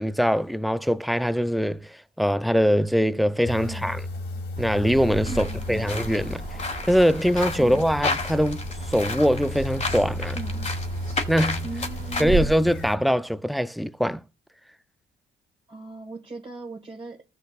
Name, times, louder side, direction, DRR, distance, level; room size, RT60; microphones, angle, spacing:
voice 1, 0.0-4.0 4.6-6.4 6.9-8.6 8.9-10.4 11.3-11.7 12.2-14.2, equal, ahead, 0.4 m, -22 dB
sound 1, 3.4-13.0, left 1 dB, 75° left, 2.6 m, -35 dB
sound 2, 4.5-12.5, right 3 dB, 45° right, 1.3 m, -35 dB
sound 3, 5.2-12.2, left 3 dB, 35° left, 1.8 m, -33 dB
voice 2, 5.3-5.9 7.6-7.8 10.3-10.7 11.6-12.4 15.7-17.2, right 3 dB, 30° right, 1.8 m, -38 dB
15.0 x 6.5 x 2.5 m
cardioid pair, 90°, 20 cm